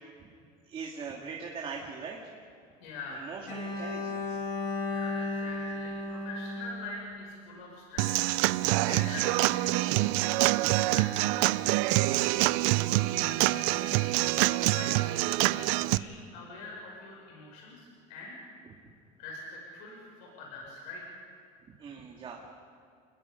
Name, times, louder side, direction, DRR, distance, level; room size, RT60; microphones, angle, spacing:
voice 1, 0.6-2.2 3.1-4.4 11.9-12.3 21.7-22.5, right 5 dB, 30° right, -2 dB, 2.3 m, -41 dB
voice 2, 2.8-3.3 4.9-8.2 8.5-11.3 12.2-12.3 12.7-14.1 14.5-14.9 15.4-18.3 19.2-21.2, left 2 dB, 80° left, -2 dB, 6.3 m, -44 dB
Bowed string instrument, 3.5-7.5, left 3 dB, 45° left, 4.6 m, -35 dB
Human voice / Acoustic guitar / Drum, 8.0-16.0, right 19 dB, 75° right, 0.6 m, -26 dB
29.0 x 21.5 x 5.2 m, 2.4 s
cardioid pair, 150°, 17 cm